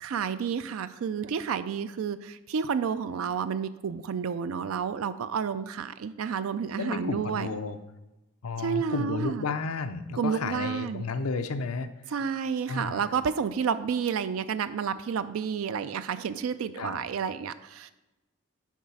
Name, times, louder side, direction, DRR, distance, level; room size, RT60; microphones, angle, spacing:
voice 1, 0.0-7.5 8.6-9.4 10.2-11.1 12.1-17.9, right 6 dB, 80° right, 12 dB, 0.4 m, -30 dB
voice 2, 6.8-7.8 8.4-11.9 12.7-13.0 16.8-17.0, left 4 dB, 85° left, 9 dB, 0.6 m, -32 dB
7.3 x 4.8 x 5.4 m, 1.0 s
head